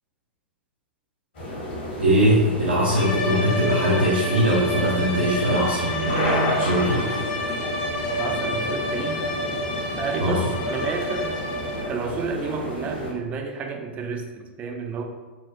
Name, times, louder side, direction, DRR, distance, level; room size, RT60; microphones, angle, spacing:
sound 1, 1.3-13.1, left 1 dB, 65° left, 1.5 m, -32 dB
voice 1, 2.0-7.2 10.2-10.4, equal, 75° right, -6 dB, 0.7 m, -21 dB
sound 2, 2.9-12.1, left 1 dB, 50° left, 0.7 m, -29 dB
voice 2, 8.2-9.2 9.9-11.4 11.9-15.0, right 5 dB, 25° right, 3 dB, 0.4 m, -30 dB
4.0 x 2.1 x 2.8 m, 1.3 s
figure-of-eight pair, 105°, 6 cm